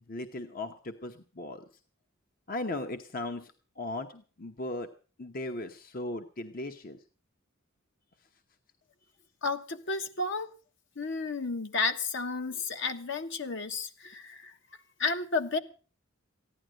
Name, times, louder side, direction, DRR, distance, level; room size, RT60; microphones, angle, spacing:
voice 1, 0.0-1.6 2.5-4.9 5.2-7.0 12.5-12.6, left 2 dB, 45° left, 7 dB, 1.0 m, -37 dB
voice 2, 9.4-10.5 10.9-14.5 15.0-15.6, left 4 dB, 65° left, 6 dB, 1.4 m, -32 dB
15.0 x 11.0 x 6.4 m, 0.39 s
head